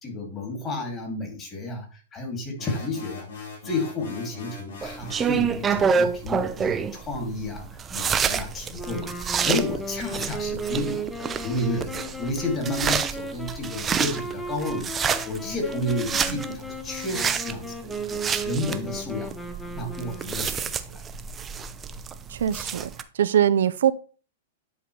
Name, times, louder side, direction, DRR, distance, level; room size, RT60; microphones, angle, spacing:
voice 1, 0.0-19.3 19.7-21.0, left 2 dB, 25° left, 2 dB, 2.6 m, -32 dB
sound 1, 2.6-5.4, left 4 dB, 80° left, 3.7 m, -40 dB
sound 2, 4.8-23.0, right 6 dB, 20° right, 0.5 m, -28 dB
sound 3, 8.8-20.6, right 2 dB, 5° left, 0.9 m, -36 dB
voice 2, 22.3-23.9, right 10 dB, 75° right, 14 dB, 0.4 m, -23 dB
10.0 x 3.8 x 3.3 m, 0.38 s
hypercardioid pair, 130°, 0 cm